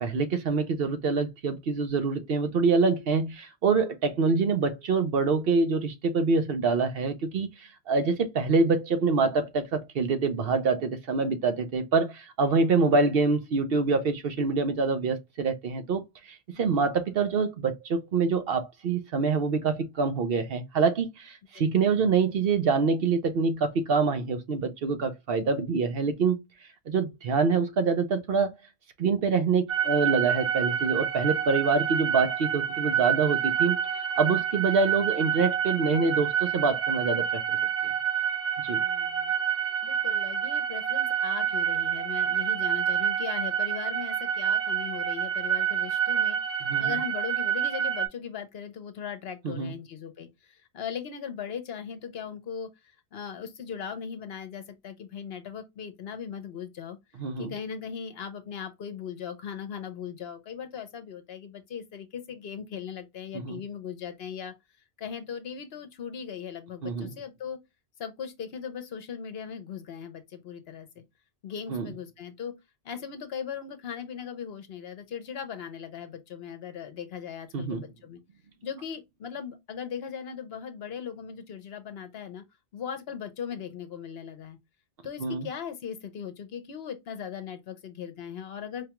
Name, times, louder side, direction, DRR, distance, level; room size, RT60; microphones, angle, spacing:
voice 1, 0.0-16.0 16.3-26.4 26.9-28.5 29.0-33.8 34.2-37.4 38.6-38.8 46.6-47.0 49.4-49.7 57.2-57.5 63.4-63.6 66.8-67.1 71.7-71.9 77.5-77.9 85.2-85.5, right 4 dB, 65° right, 0.8 m, -25 dB
voice 2, 16.5-17.0 21.5-21.9 38.7-39.3 39.8-52.7 53.1-57.0 57.4-64.5 65.0-67.6 68.0-71.0 71.4-72.5 72.8-78.2 78.6-82.4 82.7-84.6 85.0-88.9, left 7 dB, 65° left, 0.9 m, -38 dB
sound 1, 29.7-48.1, right 9 dB, 40° right, 1.0 m, -28 dB
5.0 x 2.3 x 2.9 m
omnidirectional pair, 1.1 m